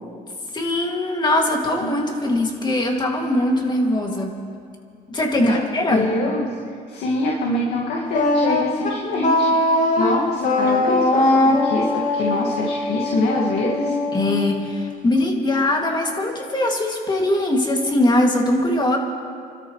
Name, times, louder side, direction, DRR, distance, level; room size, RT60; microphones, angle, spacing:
voice 1, 0.5-4.3 5.1-6.1 14.1-19.0, left 1 dB, 25° left, 1 dB, 2.4 m, -21 dB
voice 2, 5.4-9.5 10.0-13.9, left 1 dB, 85° left, -3 dB, 2.1 m, -24 dB
Wind instrument woodwind instrument, 8.1-15.1, left 2 dB, 50° left, 2.1 m, -21 dB
30.0 x 13.0 x 3.2 m, 2.3 s
cardioid pair, 110°, 17 cm